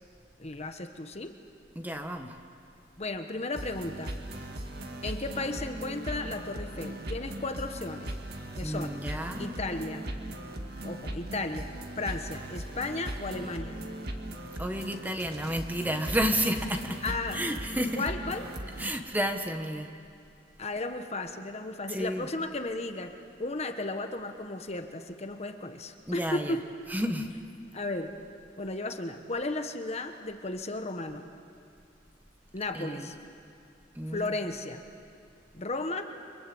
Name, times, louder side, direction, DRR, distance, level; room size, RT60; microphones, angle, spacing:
voice 1, 0.4-1.3 3.0-4.1 5.0-8.1 8.5-9.0 9.4-10.0 10.8-13.8 17.0-17.4 18.0-18.5 20.6-23.1 23.4-26.7 27.7-28.2 28.6-31.2 32.5-33.1 34.1-34.8 35.5-36.0, left 2 dB, 35° left, 6 dB, 1.2 m, -34 dB
voice 2, 1.7-2.3 8.6-9.5 14.6-17.0 17.3-18.0 18.8-19.9 21.9-22.3 26.1-26.5 26.9-27.3 32.7-33.1 33.9-34.3, equal, 10° right, 5 dB, 1.3 m, -31 dB
sound 1, 3.5-18.9, right 1 dB, 55° right, 2.0 m, -39 dB
29.0 x 24.0 x 7.9 m, 2.5 s
head